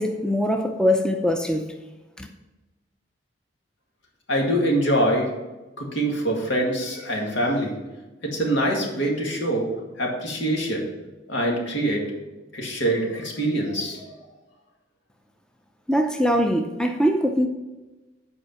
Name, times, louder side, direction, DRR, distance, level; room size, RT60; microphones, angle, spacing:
voice 1, 0.0-1.7 2.2-2.3 15.9-17.5, equal, 5° left, 4 dB, 0.5 m, -22 dB
voice 2, 4.3-5.3 5.8-7.7 8.2-9.7 10.0-10.8 11.3-12.0 12.5-14.1, right 1 dB, 80° left, -1 dB, 2.1 m, -24 dB
8.1 x 5.0 x 5.8 m, 1.1 s
head